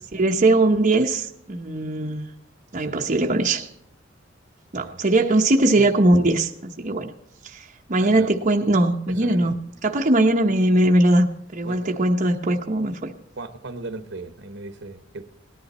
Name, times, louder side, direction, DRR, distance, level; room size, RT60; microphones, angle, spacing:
voice 1, 0.1-2.3 2.7-3.7 4.7-7.1 7.4-9.6 9.8-11.3 11.5-13.1, right 2 dB, 40° right, 1 dB, 0.9 m, -20 dB
voice 2, 2.7-3.1 4.7-5.0 5.8-5.9 7.9-8.3 9.1-9.5 11.6-11.9 13.3-15.2, right 2 dB, 65° right, 10 dB, 1.1 m, -37 dB
18.5 x 11.0 x 4.2 m, 0.78 s
head